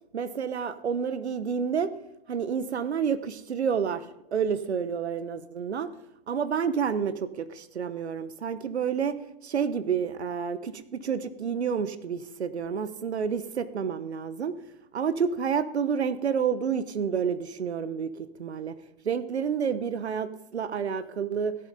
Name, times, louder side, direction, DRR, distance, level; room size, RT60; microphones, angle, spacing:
voice 1, 0.1-1.9 2.3-4.1 4.3-5.9 6.3-14.6 14.9-18.7 19.0-21.6, right 7 dB, 80° right, 14 dB, 1.0 m, -29 dB
16.5 x 10.5 x 3.8 m, 0.82 s
hypercardioid pair, 110°, 32 cm